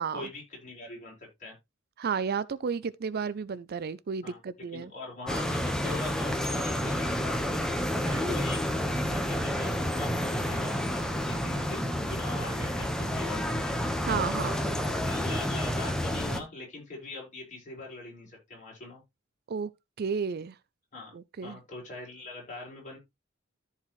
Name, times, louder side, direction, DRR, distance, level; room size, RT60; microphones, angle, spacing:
voice 1, 0.0-1.5 4.2-4.4 4.7-8.6 9.1-13.8 14.4-14.5 14.9-19.0 20.9-21.1 21.4-23.0, left 2 dB, 40° left, 5.5 m, -42 dB
voice 2, 2.0-4.9 14.0-14.5 19.5-19.7 20.0-20.5 21.1-21.6, right 6 dB, 50° right, 0.4 m, -32 dB
sound 1, 5.3-16.4, equal, 5° left, 1.1 m, -30 dB
14.0 x 4.7 x 3.1 m
head